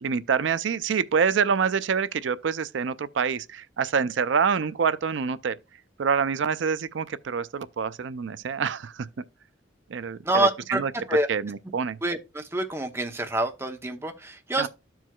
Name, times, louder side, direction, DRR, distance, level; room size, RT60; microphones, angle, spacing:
voice 1, 0.0-5.6 6.0-9.1 9.9-10.9 11.3-12.0 14.6-14.7, right 6 dB, 80° right, 0.4 m, -26 dB
voice 2, 10.2-10.8 11.1-11.3 12.0-14.7, right 1 dB, 15° right, 0.8 m, -26 dB
13.5 x 4.6 x 2.3 m
head